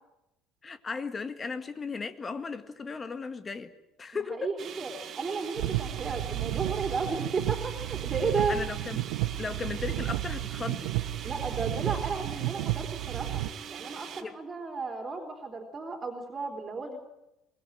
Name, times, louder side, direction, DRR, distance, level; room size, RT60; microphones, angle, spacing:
voice 1, 0.6-3.7 4.0-4.5 8.5-9.1 9.4-10.9 14.2-14.4, left 4 dB, 25° left, 1.9 m, -36 dB
voice 2, 4.3-4.9 5.2-8.6 11.2-13.4 13.7-17.0, right 4 dB, 30° right, 3.7 m, -33 dB
sound 1, 4.6-14.2, right 8 dB, 45° right, 1.9 m, -42 dB
sound 2, 5.6-13.5, right 16 dB, 65° right, 1.1 m, -32 dB
23.5 x 20.5 x 9.0 m
figure-of-eight pair, 60°, 0 cm